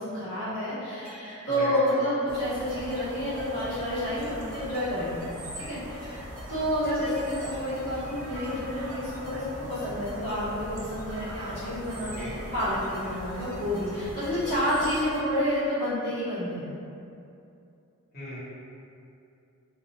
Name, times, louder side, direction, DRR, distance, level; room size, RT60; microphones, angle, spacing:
voice 1, 0.0-5.2 5.7-16.7, equal, 75° left, -13 dB, 1.0 m, -29 dB
sound 1, 1.0-15.8, equal, 10° left, 0.8 m, -45 dB
voice 2, 1.5-2.0 11.9-12.4 18.1-18.4, equal, 45° left, -14 dB, 1.0 m, -38 dB
sound 2, 2.3-15.1, right 1 dB, 55° right, 0.4 m, -41 dB
2.4 x 2.1 x 2.7 m, 2.6 s
head